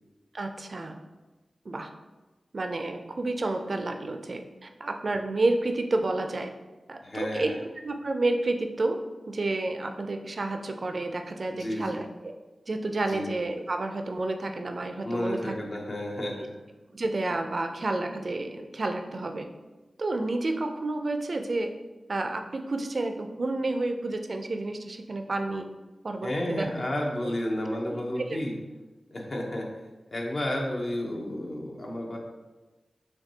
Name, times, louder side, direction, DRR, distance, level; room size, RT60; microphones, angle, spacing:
voice 1, 0.3-0.9 1.7-1.9 2.5-6.5 6.9-7.5 7.8-9.0 9.3-12.3 12.7-15.5 16.9-19.5 20.0-21.7 22.1-25.6 26.0-26.7 27.8-28.4, right 2 dB, 55° right, 5 dB, 0.4 m, -30 dB
voice 2, 7.0-7.6 11.5-12.0 13.0-13.3 15.0-16.5 26.2-28.5 29.1-29.7 30.1-32.2, left 1 dB, 50° left, 0 dB, 0.7 m, -31 dB
5.8 x 2.3 x 2.7 m, 1.2 s
cardioid pair, 50°, 0 cm